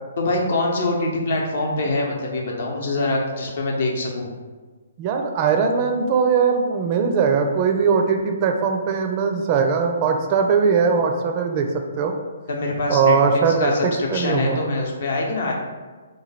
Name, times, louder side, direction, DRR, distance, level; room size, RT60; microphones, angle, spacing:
voice 1, 0.2-4.3 12.5-15.5, left 2 dB, 60° left, -1 dB, 0.7 m, -24 dB
voice 2, 5.0-11.7 12.0-12.1 12.9-14.6, right 5 dB, 35° right, 4 dB, 0.4 m, -20 dB
3.1 x 2.3 x 4.1 m, 1.4 s
figure-of-eight pair, 135°, 0 cm